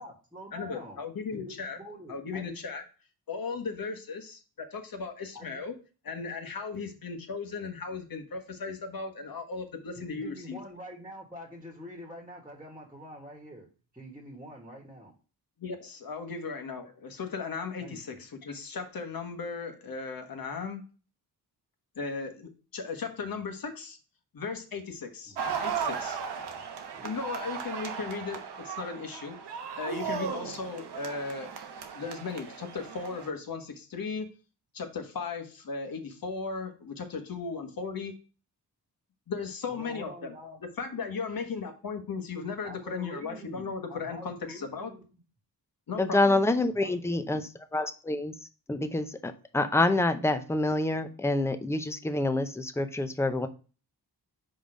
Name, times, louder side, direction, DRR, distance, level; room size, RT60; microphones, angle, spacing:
voice 1, 0.0-1.0 1.3-2.6 5.3-5.6 10.0-13.7 13.9-15.1 17.8-18.2 25.3-25.4 26.4-26.6 26.9-27.0 30.0-30.6 39.7-40.6 42.6-45.0 46.7-47.5, equal, 10° right, 1 dB, 1.5 m, -46 dB
voice 2, 0.5-1.8 2.1-2.8 3.3-5.7 6.0-10.6 15.6-20.8 22.0-24.0 24.3-26.2 27.0-31.5 31.9-34.3 34.7-38.1 39.3-40.3 40.8-44.9 45.9-46.4, left 4 dB, 60° left, 6 dB, 1.3 m, -36 dB
sound 1, 25.4-33.3, right 7 dB, 80° right, 1.0 m, -36 dB
voice 3, 46.0-47.4 47.7-48.3 48.7-53.5, left 2 dB, 5° left, 9 dB, 0.6 m, -27 dB
5.2 x 4.0 x 5.0 m, 0.35 s
cardioid pair, 90°, 39 cm